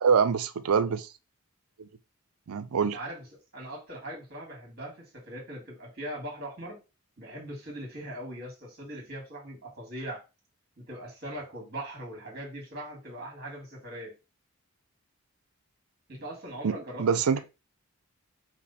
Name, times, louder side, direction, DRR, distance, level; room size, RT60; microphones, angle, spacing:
voice 1, 0.0-1.1 1.8-1.9 2.5-3.0 16.6-17.4, right 6 dB, 85° right, 0.5 m, -25 dB
voice 2, 2.8-3.3 3.5-6.8 7.2-10.2 10.8-14.1 16.1-17.0, right 1 dB, 45° right, 2.3 m, -40 dB
5.7 x 2.1 x 4.2 m
head